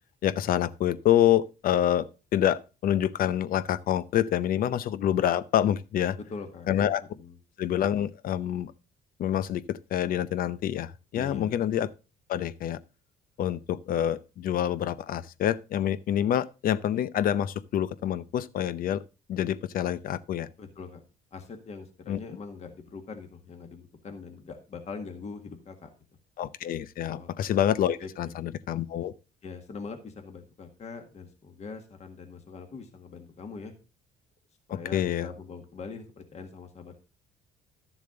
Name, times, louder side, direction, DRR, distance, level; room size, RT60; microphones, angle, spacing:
voice 1, 0.2-6.2 6.7-7.0 7.6-8.7 9.2-11.9 12.3-12.8 13.4-19.0 19.3-20.5 22.1-22.2 26.4-29.1 34.7-35.3, left 11 dB, 55° left, 0.6 m, -27 dB
voice 2, 6.3-6.8 7.1-7.4 11.1-11.6 20.6-21.0 21.3-25.9 27.1-27.3 28.0-28.3 29.4-33.7 34.7-37.0, left 5 dB, 40° left, 1.8 m, -42 dB
12.0 x 7.1 x 3.8 m
cardioid pair, 110°, 17 cm